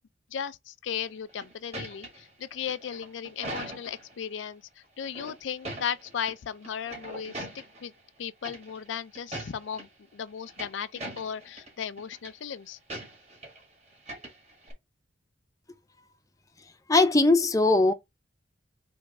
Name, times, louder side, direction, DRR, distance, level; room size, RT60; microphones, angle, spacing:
voice 1, 0.3-7.5 7.8-7.9 8.2-12.8, left 8 dB, 80° left, 0.4 m, -36 dB
sound 1, 1.1-4.1 5.0-6.3 6.6-7.9 8.4-8.9 9.1-9.9 10.3-11.7 12.0-12.3 12.9-13.6 13.9-14.7, right 1 dB, 35° right, 1.7 m, -41 dB
voice 2, 16.9-17.9, left 2 dB, 20° left, 0.5 m, -20 dB
3.5 x 3.0 x 4.8 m
head